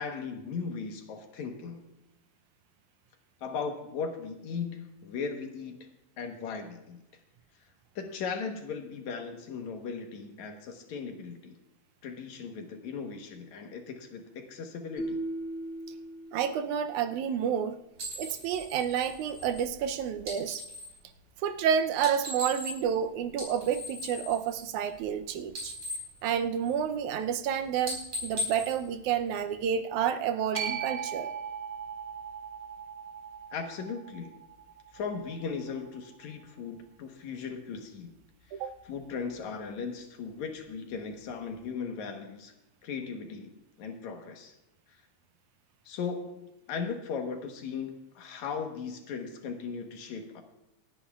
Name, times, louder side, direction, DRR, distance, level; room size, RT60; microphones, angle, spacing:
voice 1, 0.0-1.8 3.4-5.9 6.2-7.0 8.0-11.5 12.0-15.2 33.5-34.4 34.9-38.1 38.9-42.5 42.8-43.5 43.8-44.6 45.9-50.4, left 5 dB, 70° left, 4 dB, 2.5 m, -37 dB
sound 1, 15.0-17.1, right 1 dB, 45° left, 3.0 m, -38 dB
voice 2, 16.3-17.8 18.2-20.6 21.4-25.7 26.2-31.3 38.5-38.7, right 8 dB, 80° right, 8 dB, 2.1 m, -30 dB
sound 2, 18.0-21.0 21.9-23.0 23.3-25.2 25.4-27.0 27.3-27.5 27.8-29.7, left 1 dB, 50° right, 5.6 m, -39 dB
sound 3, 30.5-36.8, right 7 dB, 25° right, 1.5 m, -40 dB
27.5 x 9.8 x 2.4 m, 0.91 s
omnidirectional pair, 3.5 m